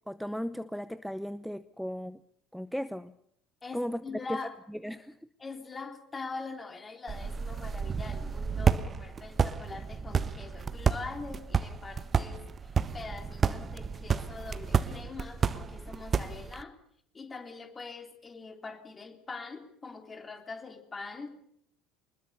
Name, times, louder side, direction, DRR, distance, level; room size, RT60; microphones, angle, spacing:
voice 1, 0.1-2.2 2.5-3.1 3.7-4.0 4.3-4.4 4.7-5.2, equal, ahead, 15 dB, 0.8 m, -36 dB
voice 2, 3.6-4.6 5.4-16.8 17.1-21.3, left 4 dB, 25° left, 6 dB, 3.6 m, -43 dB
sound 1, 7.1-16.6, right 6 dB, 30° right, 1.2 m, -31 dB
24.0 x 21.0 x 7.0 m, 0.69 s
figure-of-eight pair, 60°, 0 cm